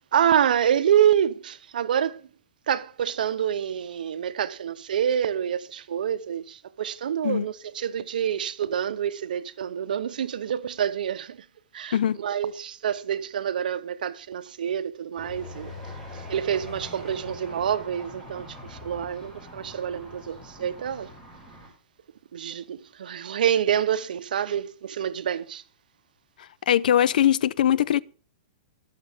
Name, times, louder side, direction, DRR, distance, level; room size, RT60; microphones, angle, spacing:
voice 1, 0.1-2.2 2.7-11.4 11.7-15.7 16.3-21.1 22.3-25.6, right 9 dB, 80° right, 0.7 m, -27 dB
sound 1, 15.2-21.7, left 1 dB, ahead, 6.0 m, -43 dB
voice 2, 26.7-28.0, left 10 dB, 75° left, 0.4 m, -21 dB
19.0 x 6.6 x 3.5 m
hypercardioid pair, 135°, 5 cm